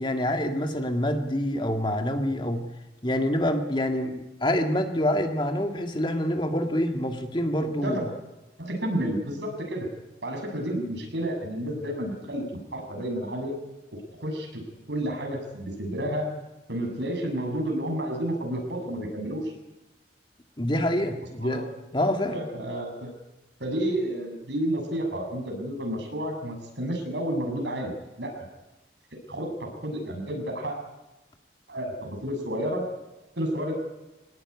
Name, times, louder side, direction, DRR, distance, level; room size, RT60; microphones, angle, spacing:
voice 1, 0.0-2.6 3.0-8.0 20.6-21.6 21.9-22.4, left 1 dB, 25° left, 5 dB, 2.2 m, -26 dB
voice 2, 8.6-9.9 10.2-13.6 14.2-14.6 14.9-16.3 16.7-19.5 21.4-21.6 22.3-23.1 23.6-28.3 29.3-30.8 31.7-32.8 33.4-33.7, right 1 dB, 80° right, 3 dB, 6.8 m, -30 dB
25.0 x 18.5 x 9.9 m, 1.0 s
head